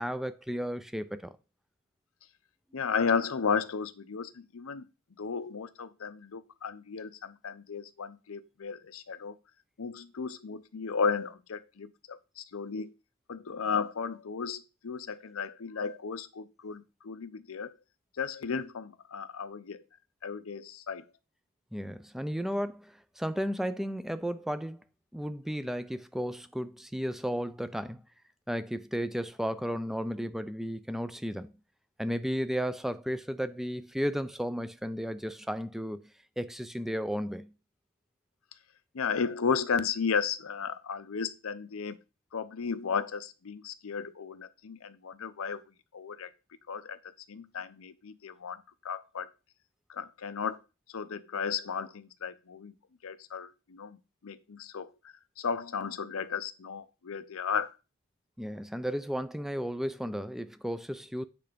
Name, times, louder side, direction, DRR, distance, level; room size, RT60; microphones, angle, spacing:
voice 1, 0.0-1.4 21.7-24.8 25.1-28.0 28.5-31.5 32.0-36.1 36.4-37.5 58.4-61.2, equal, ahead, 0.4 m, -34 dB
voice 2, 2.7-4.9 5.2-9.3 9.8-12.9 13.3-17.7 18.2-19.8 20.2-21.1 38.9-42.0 42.3-45.6 45.9-46.3 46.7-47.0 47.3-49.3 49.9-50.6 50.9-52.7 53.0-54.0 54.2-57.7, left 6 dB, 70° left, 0.6 m, -34 dB
8.6 x 3.4 x 5.1 m
head